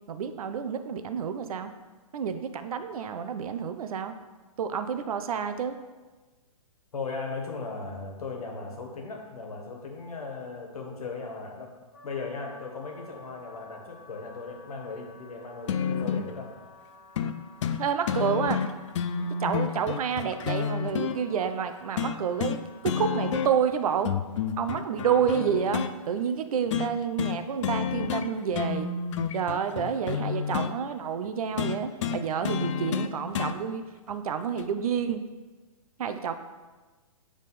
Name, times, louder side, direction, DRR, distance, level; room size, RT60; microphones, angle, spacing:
voice 1, 0.1-1.7 2.1-4.1 4.6-5.7 17.8-18.6 19.4-24.1 24.6-28.9 29.3-35.2 36.0-36.3, right 7 dB, 75° right, 9 dB, 0.5 m, -29 dB
voice 2, 6.9-11.7 12.0-16.5, left 4 dB, 85° left, 1 dB, 1.4 m, -37 dB
Wind instrument woodwind instrument, 11.9-23.5, left 2 dB, 35° left, 1.3 m, -52 dB
sound 1, 15.7-16.3 17.2-17.3 17.6-17.8 18.1-21.2 22.0-22.6 22.8-23.7 24.0-25.9 26.7-26.9 27.2-27.4 27.6-28.3 28.5-30.7 31.6-33.6 34.6-34.7, left 7 dB, 55° left, 0.4 m, -29 dB
7.3 x 3.5 x 4.1 m, 1.3 s
hypercardioid pair, 150°, 19 cm